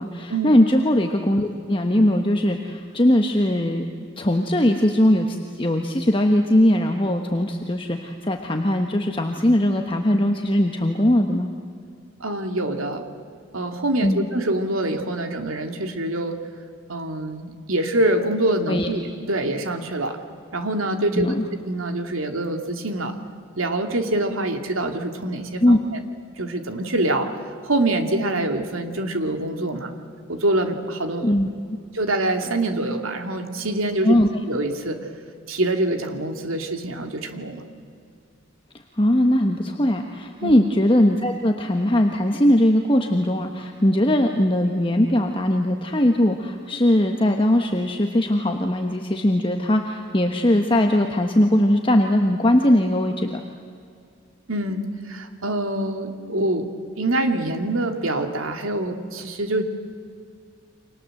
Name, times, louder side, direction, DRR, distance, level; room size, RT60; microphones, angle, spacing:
voice 1, 0.0-11.5 14.0-14.3 18.7-18.9 21.1-21.4 25.6-25.8 31.2-31.5 34.0-34.3 39.0-53.4, left 1 dB, 25° left, 4 dB, 1.2 m, -20 dB
voice 2, 12.2-13.0 13.5-16.4 16.9-20.2 20.5-21.4 21.6-23.1 23.6-25.6 25.9-26.0 26.4-27.3 27.6-29.9 30.3-31.3 31.9-34.2 34.5-35.0 35.5-37.6 40.4-40.6 54.5-56.7 56.9-59.6, right 1 dB, 80° right, 6 dB, 2.5 m, -25 dB
30.0 x 25.5 x 7.8 m, 2.4 s
head